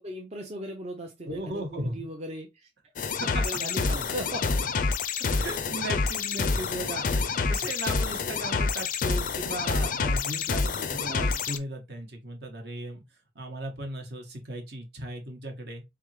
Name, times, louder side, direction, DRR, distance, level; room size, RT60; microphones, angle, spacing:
voice 1, 0.0-2.7 3.4-4.4 11.0-11.4, right 1 dB, 35° right, 0.6 m, -38 dB
voice 2, 1.3-2.0 3.2-3.4 5.2-13.0 13.3-15.8, right 1 dB, 60° right, 1.1 m, -37 dB
sound 1, 3.0-11.6, left 4 dB, 45° left, 0.4 m, -28 dB
3.8 x 3.5 x 3.1 m
head